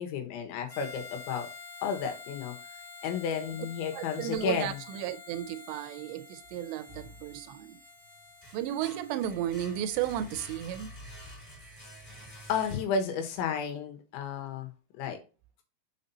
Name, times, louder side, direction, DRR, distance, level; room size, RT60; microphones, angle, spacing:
voice 1, 0.0-1.5 1.8-2.5 3.0-4.8 12.5-14.7 15.0-15.2, left 6 dB, 80° left, 3.5 m, -32 dB
Harmonica, 0.7-11.0, left 5 dB, 55° left, 1.1 m, -49 dB
voice 2, 3.9-7.8 8.5-11.0, right 11 dB, 80° right, 2.7 m, -34 dB
sound 1, 6.9-7.7 8.1-13.2, equal, 10° left, 3.0 m, -48 dB
6.6 x 5.5 x 4.0 m
omnidirectional pair, 5.3 m